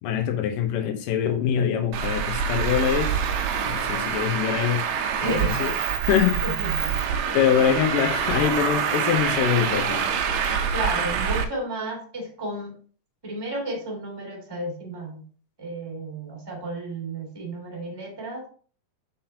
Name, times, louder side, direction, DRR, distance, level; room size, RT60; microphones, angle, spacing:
voice 1, 0.0-3.2 3.6-4.9 5.2-5.7 6.0-6.4 7.3-10.1, left 9 dB, 80° left, 2.5 m, -24 dB
Traffic noise roadway noise, 1.9-11.4, right 7 dB, 85° right, 1.5 m, -26 dB
voice 2, 5.2-5.6 6.4-7.4 10.7-12.8 13.2-15.2 15.6-18.5, right 1 dB, 10° right, 1.3 m, -32 dB
7.2 x 5.8 x 2.8 m
omnidirectional pair, 4.0 m